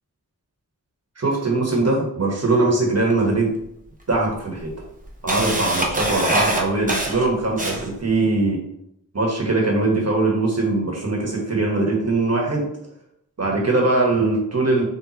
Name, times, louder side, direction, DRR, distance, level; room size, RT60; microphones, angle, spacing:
voice 1, 1.2-3.5 4.1-4.7 5.2-8.6 9.1-12.7 13.4-14.8, right 2 dB, 45° right, -2 dB, 1.3 m, -21 dB
Camera, 3.1-3.2 4.1-4.2 4.6-8.1, right 1 dB, 20° right, 0.8 m, -24 dB
4.1 x 3.3 x 3.0 m, 0.75 s
wide cardioid pair, 60°, 37 cm